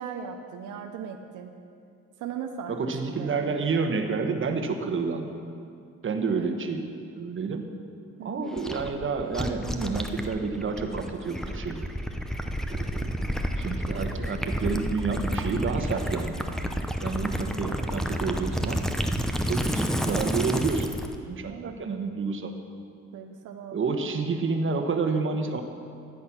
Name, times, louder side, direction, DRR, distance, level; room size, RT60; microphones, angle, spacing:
voice 1, 0.0-1.5 2.2-2.8 3.1-3.5 6.2-6.5 8.2-8.6 21.5-21.8 23.1-24.0, right 7 dB, 85° right, 4 dB, 0.8 m, -38 dB
voice 2, 2.7-5.3 6.0-6.9 7.2-7.7 8.2-11.9 12.7-16.4 17.0-18.8 19.4-20.9 21.3-22.5 23.7-25.6, right 4 dB, 40° right, 5 dB, 1.2 m, -29 dB
Gurgling / Liquid, 8.6-21.1, equal, ahead, 0.7 m, -30 dB
12.5 x 8.6 x 5.9 m, 2.4 s
cardioid pair, 90°, 30 cm